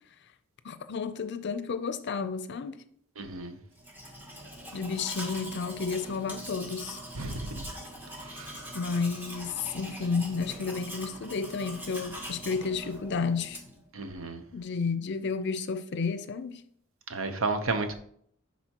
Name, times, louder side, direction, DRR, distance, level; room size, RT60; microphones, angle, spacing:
voice 1, 0.6-2.8 4.7-7.0 8.7-13.6 14.5-16.6, left 5 dB, 60° left, 0.5 m, -31 dB
voice 2, 3.2-3.5 7.2-7.6 13.9-14.4 17.1-18.0, right 3 dB, 85° right, 0.8 m, -32 dB
Domestic sounds home sounds, 3.8-13.9, equal, 10° right, 1.2 m, -42 dB
10.5 x 4.2 x 2.9 m
head